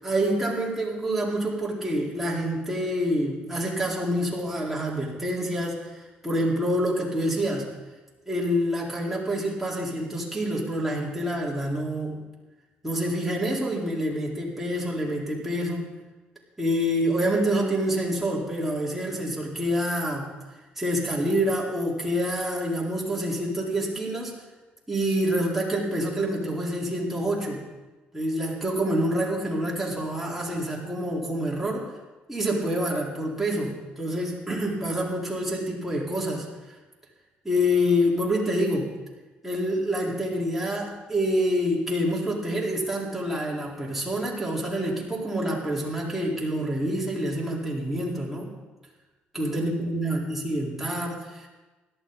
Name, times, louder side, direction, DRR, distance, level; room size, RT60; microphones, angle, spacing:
voice 1, 0.0-7.7 8.3-12.2 12.8-15.9 16.6-20.3 20.8-24.4 24.9-27.6 28.1-31.9 32.3-36.5 37.4-38.9 39.4-48.5 49.3-51.5, equal, 5° right, -4 dB, 4.5 m, -27 dB
17.0 x 12.5 x 4.1 m, 1.2 s
cardioid pair, 85°, 4 cm